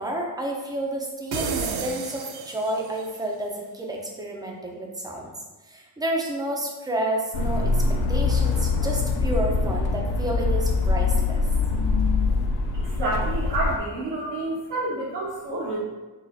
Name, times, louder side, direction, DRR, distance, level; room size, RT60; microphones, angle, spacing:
voice 1, 0.0-5.3 5.7-11.4, right 1 dB, 10° right, 0 dB, 0.5 m, -30 dB
sound 1, 1.3-3.1, right 5 dB, 60° right, 0.5 m, -31 dB
sound 2, 7.3-13.8, left 3 dB, 60° left, 0.6 m, -23 dB
voice 2, 12.7-15.8, right 2 dB, 90° right, -7 dB, 1.2 m, -29 dB
6.1 x 2.4 x 2.6 m, 1.2 s
cardioid pair, 140°, 43 cm